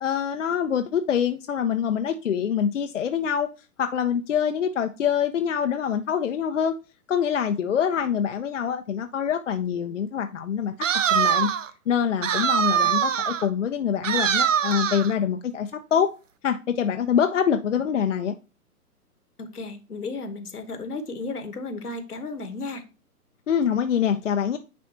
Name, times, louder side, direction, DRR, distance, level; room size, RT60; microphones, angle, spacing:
voice 1, 0.0-3.5 3.8-6.8 7.1-10.7 11.1-11.5 11.9-16.1 16.4-18.3 23.5-24.6, left 8 dB, 50° left, 0.6 m, -25 dB
sound 1, 10.8-11.7 12.2-13.5 14.0-15.1, right 8 dB, 55° right, 0.6 m, -23 dB
voice 2, 19.4-22.8, left 3 dB, 75° left, 1.3 m, -34 dB
9.5 x 4.2 x 2.9 m
figure-of-eight pair, 120°, 46 cm